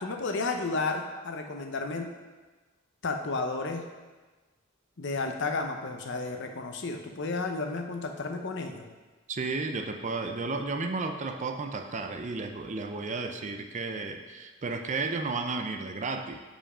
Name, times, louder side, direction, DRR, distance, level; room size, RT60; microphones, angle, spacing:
voice 1, 0.0-2.1 3.0-3.8 5.0-8.9, left 3 dB, 60° left, 4 dB, 0.7 m, -32 dB
voice 2, 9.3-16.4, right 3 dB, 35° right, 5 dB, 0.5 m, -33 dB
7.5 x 5.2 x 5.0 m, 1.3 s
head